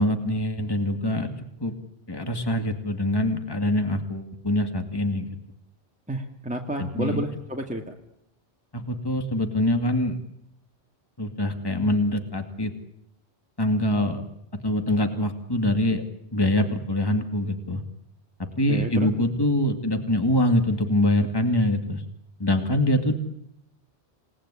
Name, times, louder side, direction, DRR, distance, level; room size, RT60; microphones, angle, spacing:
voice 1, 0.0-1.7 2.1-5.3 6.8-7.2 8.7-10.2 11.2-12.7 13.6-14.2 14.6-16.0 16.3-17.8 18.6-22.0 22.4-23.1, left 1 dB, 20° left, 6 dB, 2.3 m, -24 dB
voice 2, 6.1-7.9 18.7-19.1, equal, 5° right, 1 dB, 2.1 m, -30 dB
28.0 x 19.0 x 10.0 m, 0.78 s
omnidirectional pair, 1.1 m